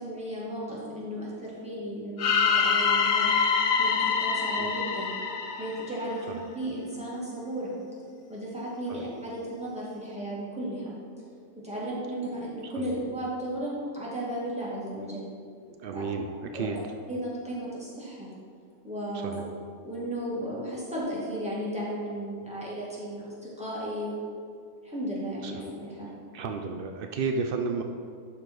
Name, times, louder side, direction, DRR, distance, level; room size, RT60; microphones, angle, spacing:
voice 1, 0.0-3.3 3.8-5.1 5.5-7.7 8.3-10.9 11.6-15.2 15.9-16.0 16.5-16.7 17.1-18.3 18.8-19.4 19.8-24.2 24.8-26.1, right 1 dB, 5° right, -7 dB, 2.0 m, -34 dB
sound 1, 2.2-6.3, left 6 dB, 60° left, 0.8 m, -25 dB
voice 2, 15.7-16.8 19.1-19.4 25.4-25.6 26.3-27.8, right 4 dB, 85° right, 5 dB, 0.4 m, -33 dB
11.5 x 4.3 x 4.6 m, 2.2 s
omnidirectional pair, 1.5 m